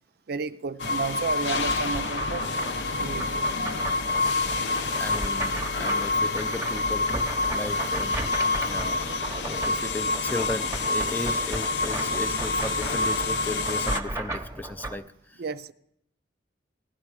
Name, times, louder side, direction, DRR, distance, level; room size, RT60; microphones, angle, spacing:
voice 1, 0.3-3.3 4.6-4.7 15.4-15.7, right 5 dB, 60° right, 0.5 m, -33 dB
sound 1, 0.8-14.0, left 3 dB, 75° left, 0.7 m, -27 dB
sound 2, 1.6-14.9, right 2 dB, 15° right, 0.8 m, -36 dB
voice 2, 5.0-7.1 7.5-8.2 8.6-9.2 9.4-15.4, left 2 dB, 10° left, 0.4 m, -35 dB
16.5 x 11.5 x 4.8 m
head